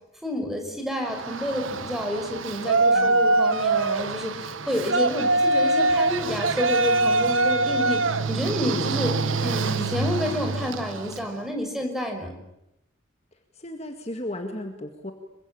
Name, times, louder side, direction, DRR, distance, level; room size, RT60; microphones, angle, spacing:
voice 1, 0.2-9.1 9.4-12.3, equal, ahead, 3 dB, 5.3 m, -29 dB
Yell, 1.1-11.3, right 2 dB, 75° right, 1.4 m, -24 dB
voice 2, 2.9-3.4 8.8-9.2 13.6-15.1, left 1 dB, 30° left, 5 dB, 2.0 m, -36 dB
27.0 x 23.5 x 8.8 m, 0.85 s
head